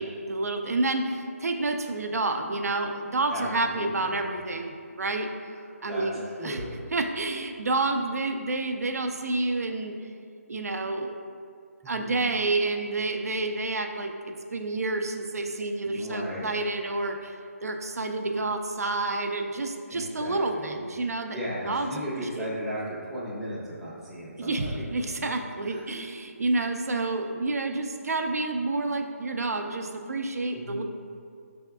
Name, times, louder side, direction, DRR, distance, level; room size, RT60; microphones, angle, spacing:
voice 1, 0.0-5.3 5.8-6.6 6.9-9.9 10.5-11.2 11.9-21.4 21.7-22.5 24.4-30.8, right 2 dB, 75° right, 5 dB, 0.4 m, -29 dB
voice 2, 3.3-4.3 5.9-6.1 6.4-6.7 11.8-12.3 15.8-16.5 19.9-24.9 25.7-25.9 30.5-30.8, equal, ahead, -10 dB, 0.4 m, -36 dB
5.8 x 3.4 x 2.3 m, 2.3 s
figure-of-eight pair, 160°, 8 cm